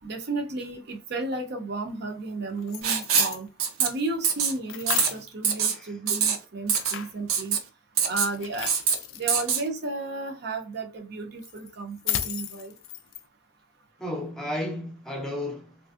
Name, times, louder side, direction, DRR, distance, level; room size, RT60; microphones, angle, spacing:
voice 1, 0.0-3.5 3.8-7.6 8.1-8.7 9.1-12.7, right 2 dB, 50° right, 0.5 m, -33 dB
sound 1, 2.5-3.4 4.7-5.3 6.7-7.2 8.3-9.4 11.4-13.2, left 11 dB, 75° left, 0.3 m, -33 dB
Writing, 2.8-3.3 3.6-3.9 4.2-4.5 4.9-5.1 5.4-5.7 6.1-6.4 6.7-6.9 7.3-7.6 8.0-8.3 8.7-8.9 9.3-9.6, right 7 dB, 90° right, 0.6 m, -23 dB
voice 2, 5.6-5.9 14.0-15.8, left 1 dB, 5° left, 0.6 m, -33 dB
3.3 x 2.5 x 2.4 m
head